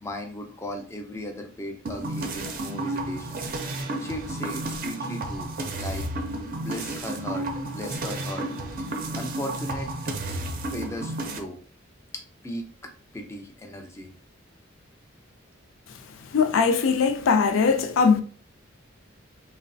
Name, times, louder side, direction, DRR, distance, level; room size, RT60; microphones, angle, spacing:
voice 1, 0.0-5.5 5.8-6.1 6.6-8.5 8.8-8.9 9.1-9.9 10.7-11.6 12.4-14.1, equal, 15° left, 0.4 m, -37 dB
sound 1, 1.9-11.4, right 2 dB, 45° right, 0.4 m, -32 dB
voice 2, 16.3-18.2, left 5 dB, 80° left, 0.4 m, -20 dB
3.0 x 2.0 x 2.6 m
head